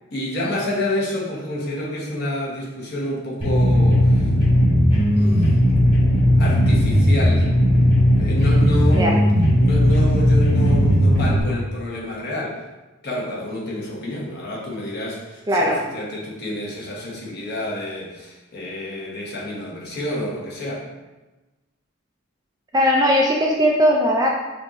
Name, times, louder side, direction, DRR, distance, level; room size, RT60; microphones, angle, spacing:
voice 1, 0.1-4.3 4.9-5.5 6.4-7.5 8.1-9.3 9.6-12.6 13.0-20.8, left 1 dB, 50° left, -4 dB, 1.1 m, -28 dB
sound 1, 3.4-11.4, equal, 25° left, 1.3 m, -16 dB
voice 2, 15.5-15.8 22.7-24.3, equal, 15° right, -1 dB, 0.4 m, -18 dB
6.4 x 2.5 x 3.0 m, 1.1 s
head